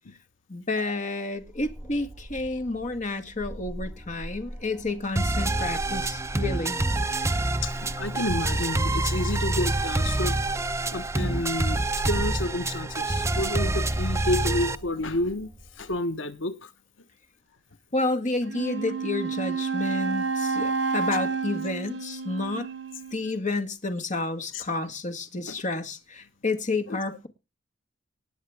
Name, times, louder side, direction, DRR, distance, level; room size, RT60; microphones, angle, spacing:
voice 1, 0.5-6.8 17.9-22.7 23.1-27.3, left 2 dB, 40° left, 1.8 m, -30 dB
sound 1, 1.4-15.9, equal, 15° left, 5.7 m, -41 dB
sound 2, 5.2-14.8, right 2 dB, 15° right, 0.7 m, -27 dB
voice 2, 7.6-10.5 10.9-15.5 15.8-16.7 24.5-24.9 25.5-25.6 26.9-27.0, left 1 dB, 85° left, 1.3 m, -30 dB
Wind instrument woodwind instrument, 18.4-23.4, right 4 dB, 65° right, 2.3 m, -30 dB
19.5 x 7.2 x 3.5 m
head